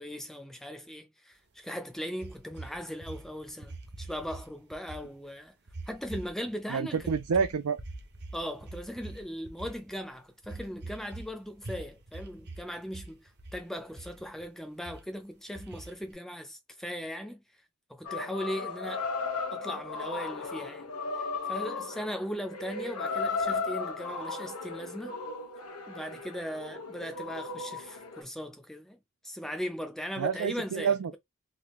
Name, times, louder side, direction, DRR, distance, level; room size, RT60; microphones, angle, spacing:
voice 1, 0.0-5.5 5.9-7.2 8.3-17.4 17.9-19.1 19.5-20.9 21.4-25.2 25.9-29.0 29.2-30.9, equal, ahead, 0.5 m, -38 dB
sound 1, 2.2-4.5 4.7-5.0 5.7-6.5 7.0-9.9 10.4-11.3 11.6-12.6 12.9-13.6 13.9-14.4 14.9-15.0 15.6-16.1, right 2 dB, 50° right, 0.8 m, -43 dB
voice 2, 6.7-7.8 30.2-31.2, right 6 dB, 75° right, 0.4 m, -28 dB
sound 2, 18.0-28.2, left 4 dB, 80° left, 1.1 m, -35 dB
3.6 x 2.3 x 3.0 m
head